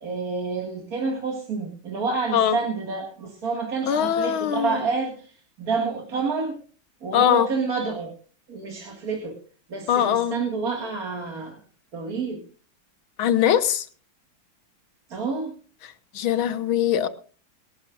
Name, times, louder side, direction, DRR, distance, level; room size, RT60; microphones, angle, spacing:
voice 1, 0.0-6.6 7.0-8.1 8.5-9.3 9.7-11.6 11.9-12.4 15.1-15.5, right 4 dB, 50° right, 1 dB, 2.4 m, -28 dB
voice 2, 3.9-4.8 7.1-7.5 9.9-10.4 13.2-13.9 15.8-17.1, left 10 dB, 90° left, 12 dB, 1.9 m, -22 dB
24.5 x 12.0 x 2.5 m, 0.39 s
omnidirectional pair, 2.2 m